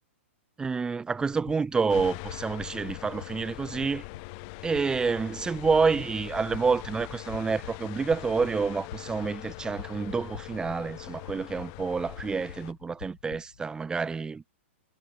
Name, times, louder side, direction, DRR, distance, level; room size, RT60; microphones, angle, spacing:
voice 1, 0.6-4.0 4.6-14.4, right 5 dB, 10° right, 2.3 m, -28 dB
sound 1, 1.4-13.7, left 8 dB, 80° left, 2.3 m, -48 dB
sound 2, 1.9-12.7, left 40 dB or more, 40° left, 2.1 m, -42 dB
hypercardioid pair, 135°, 7 cm